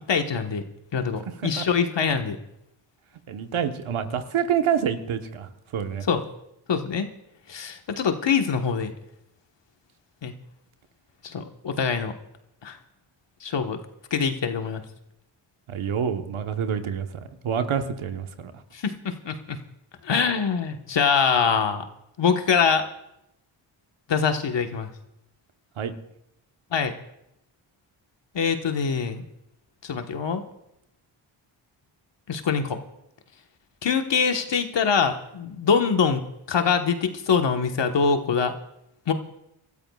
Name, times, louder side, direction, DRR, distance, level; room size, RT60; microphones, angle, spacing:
voice 1, 0.1-0.6 0.9-2.4 6.1-6.2 6.7-7.1 7.5-8.9 10.2-10.3 11.2-12.1 12.6-12.8 13.4-13.8 14.1-14.8 18.7-19.6 20.0-21.8 22.2-22.9 24.1-24.9 26.7-26.9 28.3-29.2 29.8-30.4 32.3-32.8 33.8-38.5 39.1-39.2, left 6 dB, 55° left, 6 dB, 1.4 m, -24 dB
voice 2, 3.3-6.0 15.7-17.1 17.4-18.5 25.8-25.9, right 8 dB, 70° right, 7 dB, 1.2 m, -27 dB
28.0 x 13.0 x 2.4 m, 0.83 s
supercardioid pair, 50°, 50 cm